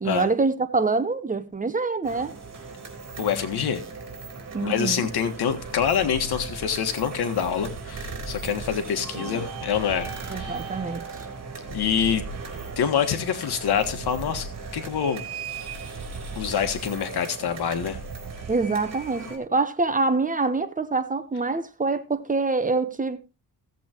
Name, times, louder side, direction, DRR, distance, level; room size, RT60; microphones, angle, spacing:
voice 1, 0.0-2.3 4.5-5.1 9.1-9.4 10.3-11.0 18.5-23.2, right 3 dB, 20° right, 0.9 m, -25 dB
sound 1, 2.0-19.4, right 4 dB, 45° right, 3.6 m, -37 dB
voice 2, 3.2-3.8 4.6-10.6 11.7-12.2 12.8-15.2 16.3-18.0, left 8 dB, 85° left, 1.7 m, -26 dB
16.0 x 7.9 x 3.0 m
cardioid pair, 115°, 38 cm